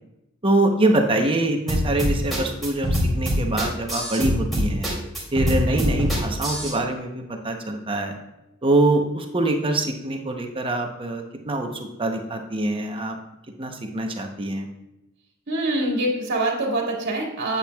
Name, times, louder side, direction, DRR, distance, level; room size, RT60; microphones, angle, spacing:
voice 1, 0.4-4.9 5.3-8.2 8.6-13.2 13.6-14.7, right 2 dB, 25° right, 3 dB, 0.8 m, -24 dB
sound 1, 1.7-6.7, equal, ahead, 2.5 m, -23 dB
voice 2, 15.5-17.6, right 1 dB, 60° right, -1 dB, 2.0 m, -25 dB
8.9 x 8.2 x 2.3 m, 0.92 s
head